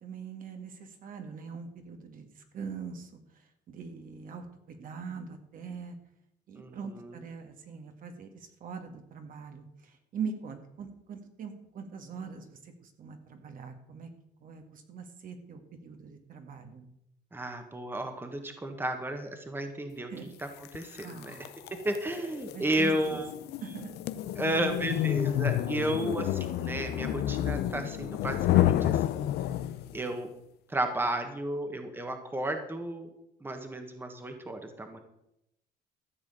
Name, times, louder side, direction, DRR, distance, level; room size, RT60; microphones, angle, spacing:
voice 1, 0.0-3.2 3.7-6.0 6.5-14.1 14.4-16.9 20.1-20.3 21.0-21.5 22.5-23.2 23.6-23.9, right 5 dB, 55° right, 5 dB, 1.9 m, -42 dB
voice 2, 17.3-20.1 20.7-21.3 21.8-23.3 24.4-29.0 29.9-30.3 30.7-33.1 33.4-35.0, right 1 dB, 10° right, 6 dB, 1.5 m, -33 dB
sound 1, 20.6-30.0, left 13 dB, 75° left, 0.7 m, -30 dB
14.0 x 4.9 x 8.8 m, 0.82 s
cardioid pair, 110°, 17 cm